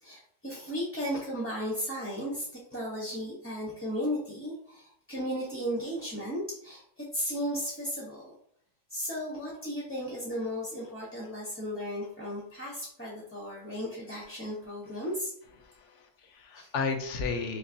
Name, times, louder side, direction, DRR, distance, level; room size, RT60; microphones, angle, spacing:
voice 1, 0.0-8.2 8.9-15.3 16.5-16.7, equal, 15° left, -5 dB, 0.5 m, -35 dB
voice 2, 15.6-17.6, left 4 dB, 75° left, 5 dB, 0.9 m, -33 dB
5.3 x 2.0 x 2.6 m, 0.67 s
omnidirectional pair, 1.3 m